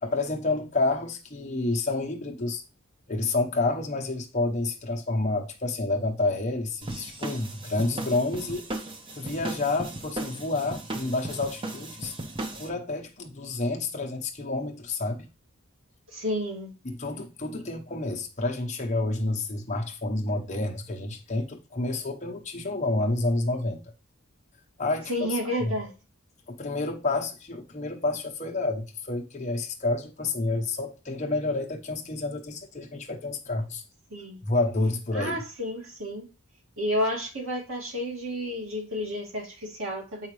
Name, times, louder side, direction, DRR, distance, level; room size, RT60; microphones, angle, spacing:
voice 1, 0.0-2.6 3.1-8.6 9.2-12.1 12.5-15.2 16.8-23.8 24.8-25.7 26.5-33.8 34.4-35.4, left 2 dB, 35° left, 1.0 m, -29 dB
sound 1, 6.8-12.7, right 2 dB, 25° right, 0.8 m, -36 dB
voice 2, 16.1-16.7 25.1-25.9 34.1-34.4 35.1-36.3 36.8-40.3, equal, 70° right, 2.4 m, -31 dB
7.9 x 5.0 x 3.2 m
head